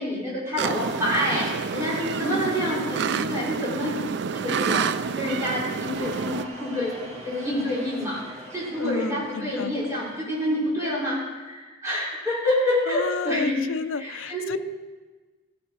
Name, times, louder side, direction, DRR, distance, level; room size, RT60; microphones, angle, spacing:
voice 1, 0.0-6.9 7.2-13.5 13.9-14.7, left 1 dB, 15° right, -7 dB, 4.9 m, -28 dB
sound 1, 0.6-6.4, right 5 dB, 60° right, 0.4 m, -28 dB
sound 2, 5.9-10.8, right 1 dB, 35° right, 2.0 m, -42 dB
voice 2, 8.8-9.7 12.9-14.6, left 5 dB, 80° left, 13 dB, 0.5 m, -31 dB
15.0 x 9.0 x 4.7 m, 1.3 s
head